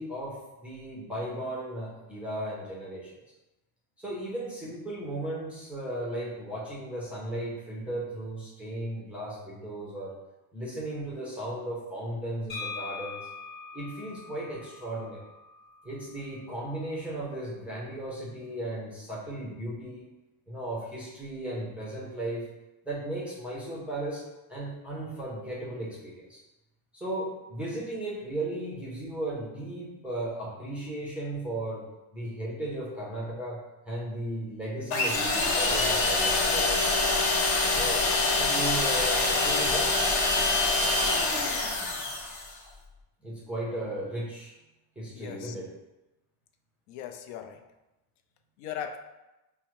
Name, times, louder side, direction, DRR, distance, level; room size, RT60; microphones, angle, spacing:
voice 1, 0.0-3.2 4.0-10.1 10.5-13.3 13.7-15.2 15.8-20.1 20.5-22.5 22.8-26.4 26.9-31.8 32.1-33.6 33.9-37.0 37.7-39.9 43.2-44.5 45.0-45.7, right 1 dB, 5° right, -7 dB, 0.4 m, -36 dB
sound 1, 12.5-16.3, left 4 dB, 25° left, 0.8 m, -42 dB
sound 2, 34.9-42.5, left 3 dB, 50° left, 0.9 m, -25 dB
voice 2, 45.1-45.5 46.9-47.6 48.6-49.0, left 9 dB, 80° left, 6 dB, 0.5 m, -38 dB
4.6 x 2.1 x 2.9 m, 1.0 s
cardioid pair, 150°, 46 cm